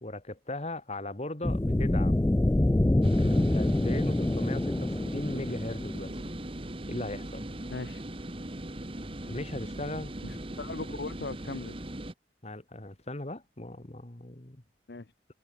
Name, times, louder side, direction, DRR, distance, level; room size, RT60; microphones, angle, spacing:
voice 1, 0.0-2.2 3.1-6.1 6.9-7.5 9.3-10.1 12.4-14.6, left 1 dB, 35° left, 1.8 m, -38 dB
sound 1, 1.4-6.4, left 1 dB, 15° left, 0.3 m, -26 dB
sound 2, 3.0-12.1, right 1 dB, 30° right, 1.6 m, -39 dB
voice 2, 7.7-8.0 10.2-11.8 14.9-15.1, left 3 dB, 65° left, 0.9 m, -38 dB
head